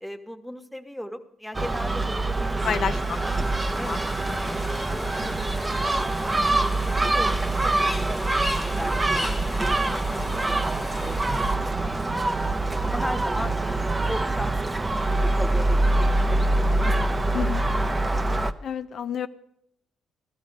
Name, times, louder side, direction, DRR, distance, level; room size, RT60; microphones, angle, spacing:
voice 1, 0.0-2.9 3.2-3.3 3.8-4.1 4.9-8.3 8.6-12.2 12.8-16.4 16.7-17.4, equal, 5° left, 6 dB, 1.2 m, -38 dB
Gull seagull, 1.5-18.5, right 2 dB, 20° right, 0.7 m, -24 dB
voice 2, 2.6-3.2 3.8-4.0 4.3-4.6 13.4-13.5 17.3-17.6 18.6-19.3, left 8 dB, 60° left, 11 dB, 0.6 m, -30 dB
sound 1, 2.9-11.6, left 3 dB, 35° left, 1.7 m, -39 dB
14.5 x 13.5 x 5.3 m, 0.73 s
cardioid pair, 90°, 0 cm